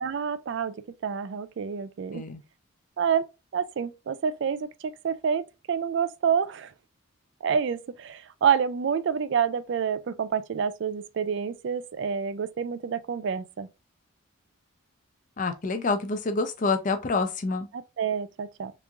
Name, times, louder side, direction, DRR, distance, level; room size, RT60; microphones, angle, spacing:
voice 1, 0.0-0.7 1.0-2.2 3.0-6.7 7.4-13.7 17.7-18.7, right 7 dB, 55° right, 0.3 m, -28 dB
voice 2, 15.4-17.7, left 3 dB, 35° left, 0.5 m, -27 dB
3.5 x 3.0 x 2.4 m
head